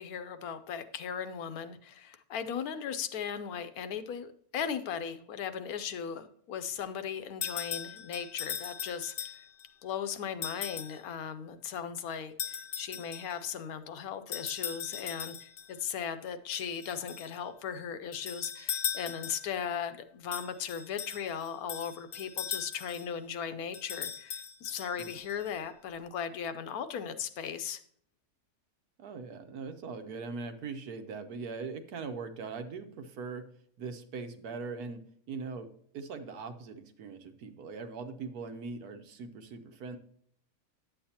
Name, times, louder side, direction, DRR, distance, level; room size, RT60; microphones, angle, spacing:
voice 1, 0.0-9.4 9.8-27.8, left 7 dB, 75° left, 11 dB, 1.1 m, -37 dB
sound 1, 7.4-9.7 10.4-11.0 12.4-13.4 14.3-15.7 16.5-17.4 18.1-19.6 20.3-23.1 23.7-25.5, left 8 dB, 50° left, 0.7 m, -39 dB
voice 2, 29.0-33.5 33.8-40.0, right 4 dB, 75° right, 8 dB, 1.4 m, -41 dB
10.0 x 7.9 x 2.8 m, 0.64 s
omnidirectional pair, 1.6 m